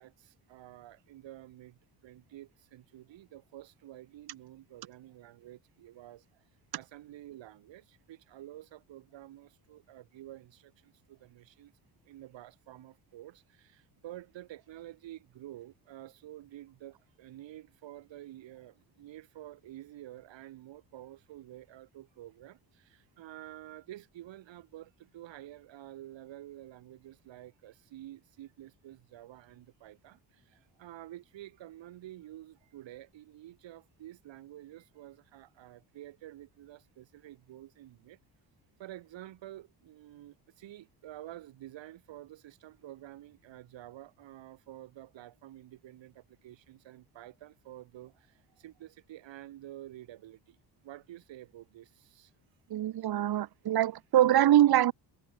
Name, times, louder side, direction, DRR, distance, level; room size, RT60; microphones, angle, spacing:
voice 1, 0.0-6.4 6.7-11.7 12.0-38.2 38.8-50.6 50.8-52.3, right 13 dB, 75° right, 5.6 m, -50 dB
voice 2, 52.7-54.9, right 12 dB, 55° right, 1.1 m, -24 dB
cardioid pair, 90°, 45 cm